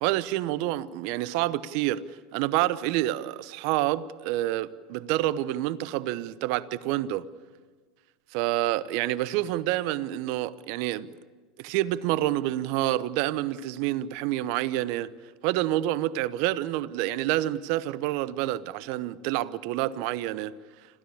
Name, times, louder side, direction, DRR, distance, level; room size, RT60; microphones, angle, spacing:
voice 1, 0.0-2.0 2.3-7.2 8.3-11.1 11.6-15.1 15.4-20.5, right 15 dB, 65° right, 0.8 m, -28 dB
26.0 x 15.5 x 8.5 m
hypercardioid pair, 80°, 0 cm